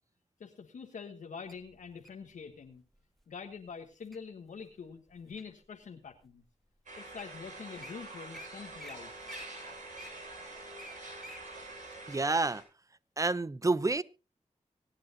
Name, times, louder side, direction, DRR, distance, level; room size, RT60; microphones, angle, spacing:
voice 1, 0.4-2.8 3.3-6.4 7.0-9.1, left 6 dB, 85° left, 1.3 m, -45 dB
Wild animals, 1.5-2.2 2.9-3.2 3.7-4.2 4.7-5.6 6.2-6.3 6.9-7.0 7.2-7.4 7.6-7.9 8.3-8.5 8.8-9.0 9.3-11.4 11.9-12.0, equal, ahead, 1.4 m, -49 dB
sound 1, 6.9-12.6, right 2 dB, 80° right, 7.7 m, -46 dB
voice 2, 12.1-12.6 13.2-14.0, right 3 dB, 25° right, 0.6 m, -28 dB
25.0 x 8.9 x 2.8 m
cardioid pair, 70°, 13 cm